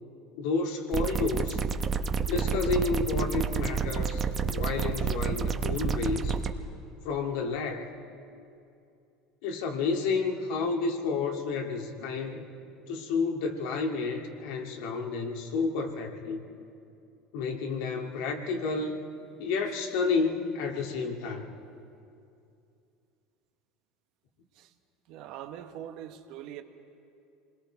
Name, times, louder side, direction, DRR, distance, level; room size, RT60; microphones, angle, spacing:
voice 1, 0.4-1.6 2.3-6.4 7.0-7.9 9.4-12.4 12.9-16.4 17.3-19.0 19.4-21.5, left 4 dB, 75° left, 2.1 m, -30 dB
sound 1, 0.9-6.5, right 6 dB, 30° right, 1.0 m, -29 dB
voice 2, 25.1-26.6, right 11 dB, 65° right, 1.3 m, -42 dB
27.0 x 21.0 x 4.6 m
supercardioid pair, 100°, 0 cm